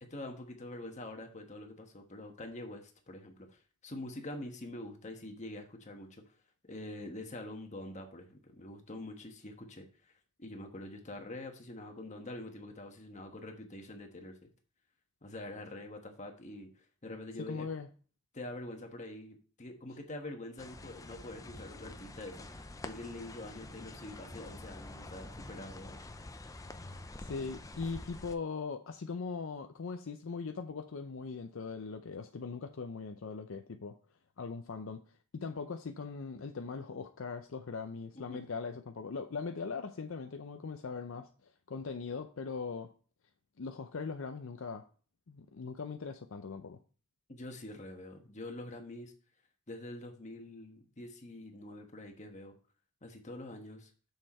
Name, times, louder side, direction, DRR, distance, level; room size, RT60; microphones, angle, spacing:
voice 1, 0.0-6.2 6.6-9.9 10.4-14.5 15.2-16.7 17.0-17.7 18.3-26.0 38.1-38.4 47.3-49.1 49.7-52.5 53.0-53.9, left 1 dB, 35° left, 4 dB, 1.3 m, -45 dB
voice 2, 17.4-17.9 27.2-33.9 34.4-35.0 35.3-42.9 43.6-44.8 45.3-46.8, left 4 dB, 65° left, 7 dB, 0.5 m, -40 dB
sound 1, 20.6-28.4, left 2 dB, 15° left, 0.5 m, -47 dB
6.6 x 6.3 x 4.3 m, 0.39 s
head